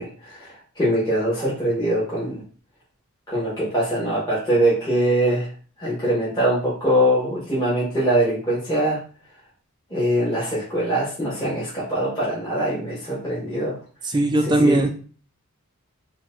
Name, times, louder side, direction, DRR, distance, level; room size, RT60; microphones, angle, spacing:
voice 1, 0.0-2.4 3.3-5.5 5.8-9.0 9.9-13.8 14.4-14.9, right 1 dB, 20° left, -9 dB, 1.0 m, -23 dB
voice 2, 14.0-14.9, right 1 dB, 20° right, 5 dB, 0.3 m, -19 dB
4.1 x 2.2 x 2.5 m, 0.40 s
head